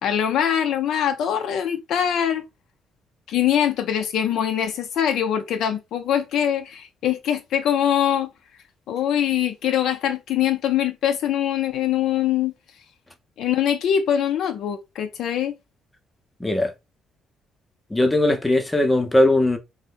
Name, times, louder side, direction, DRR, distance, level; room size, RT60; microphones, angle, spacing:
voice 1, 0.0-2.5 3.3-8.3 8.9-12.5 13.4-15.5, left 9 dB, 75° left, 0.4 m, -23 dB
voice 2, 16.4-16.7 17.9-19.6, left 1 dB, 10° left, 0.6 m, -19 dB
2.7 x 2.1 x 3.2 m
cardioid pair, 130°, 0 cm